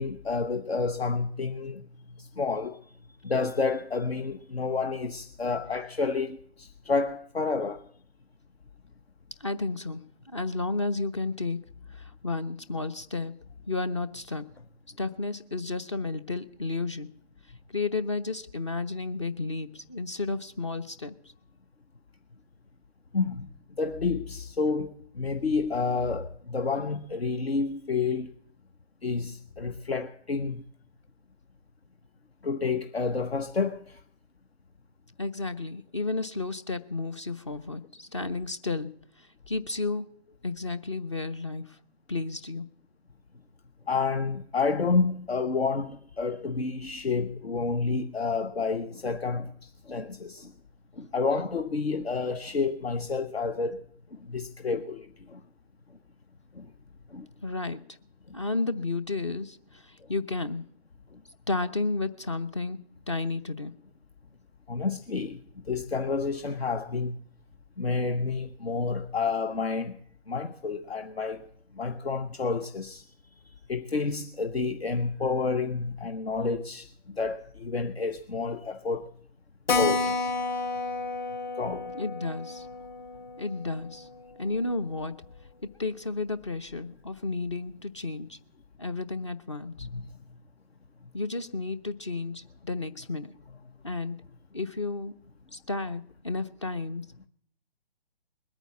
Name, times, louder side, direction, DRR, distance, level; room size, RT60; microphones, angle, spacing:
voice 1, 0.0-1.8 2.2-2.8 3.2-7.8 23.1-23.5 23.8-28.3 29.0-30.6 32.4-34.0 43.9-50.5 51.0-53.8 54.1-55.4 56.5-56.7 57.1-57.3 64.7-65.4 65.7-67.2 67.8-70.0 70.3-71.4 71.7-73.0 73.7-76.9 77.2-79.1 79.7-80.2 81.6-82.0 89.8-90.1, left 4 dB, 70° left, 1.0 m, -29 dB
voice 2, 9.4-11.6 11.9-13.3 13.7-14.5 15.0-17.1 17.7-21.3 35.2-40.1 40.4-41.8 42.1-42.7 57.4-58.0 58.3-60.7 61.5-62.8 63.1-63.7 81.9-82.7 83.4-84.1 84.4-85.1 85.6-88.4 88.8-89.9 91.1-93.3 93.8-94.2 94.5-95.1 95.5-97.3, left 3 dB, 30° left, 0.5 m, -32 dB
Keyboard (musical), 79.7-84.7 85.0-85.1 85.4-85.5 85.8-85.9 86.4-86.8, left 3 dB, 50° left, 1.7 m, -31 dB
20.5 x 9.1 x 7.1 m
figure-of-eight pair, 145°, 31 cm